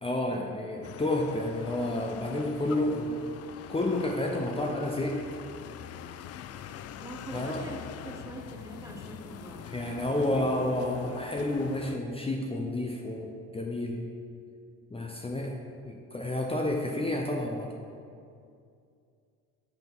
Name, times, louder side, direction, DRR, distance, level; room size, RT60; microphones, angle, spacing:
voice 1, 0.0-3.1 3.7-5.2 7.3-7.6 9.7-14.1 14.9-15.5 15.8-17.7, left 1 dB, 15° left, 0 dB, 0.7 m, -30 dB
sound 1, 0.8-12.0, left 9 dB, 50° left, 0.4 m, -44 dB
voice 2, 7.0-10.5, right 2 dB, 10° right, 1 dB, 0.9 m, -44 dB
6.9 x 4.0 x 5.4 m, 2.4 s
hypercardioid pair, 65°, 33 cm